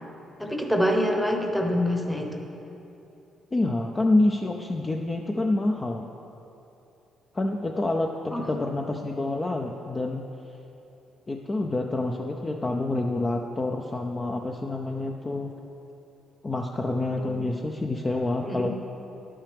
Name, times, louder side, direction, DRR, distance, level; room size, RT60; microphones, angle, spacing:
voice 1, 0.4-2.5 8.3-8.7 17.2-17.5 18.4-18.7, equal, 5° left, 2 dB, 1.0 m, -26 dB
voice 2, 3.5-6.0 7.3-10.2 11.3-15.5 16.4-18.8, left 2 dB, 25° left, 2 dB, 0.5 m, -27 dB
10.5 x 8.7 x 3.4 m, 2.9 s
cardioid pair, 90°, 0 cm